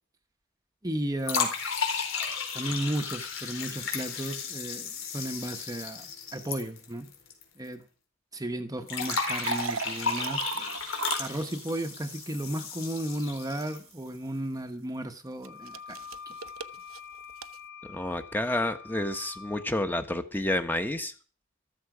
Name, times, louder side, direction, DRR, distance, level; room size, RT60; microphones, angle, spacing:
voice 1, 0.8-1.5 2.5-6.1 6.3-7.1 7.6-7.8 8.3-10.7 11.2-16.0 16.3-16.4, right 1 dB, 20° right, 7 dB, 1.0 m, -34 dB
sound 1, 1.2-7.4 7.7-7.8 8.9-13.9, left 5 dB, 80° left, 4.4 m, -34 dB
sound 2, 8.9-14.0 15.4-17.6, right 6 dB, 85° right, 0.9 m, -39 dB
Wind instrument woodwind instrument, 15.4-19.7, left 6 dB, 65° left, 5.0 m, -46 dB
voice 2, 17.8-21.1, left 1 dB, 10° left, 8 dB, 1.3 m, -30 dB
14.0 x 14.0 x 5.0 m, 0.39 s
head